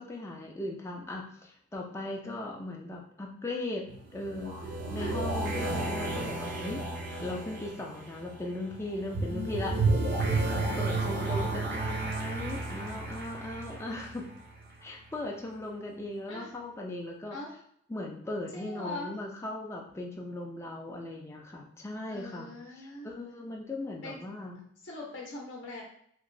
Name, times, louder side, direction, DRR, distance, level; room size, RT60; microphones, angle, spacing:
voice 1, 0.0-3.9 4.1-6.8 7.2-9.8 10.8-14.3 14.8-17.4 17.9-22.5 22.8-24.6, left 2 dB, 15° left, -1 dB, 0.4 m, -38 dB
sound 1, 3.9-14.7, right 2 dB, 45° right, 0.5 m, -32 dB
voice 2, 10.6-11.3 16.3-16.5 17.3-17.6 18.5-19.2 22.1-23.1 24.0-24.2 24.8-25.8, left 2 dB, 60° left, -3 dB, 0.6 m, -42 dB
3.0 x 2.8 x 2.6 m, 0.68 s
head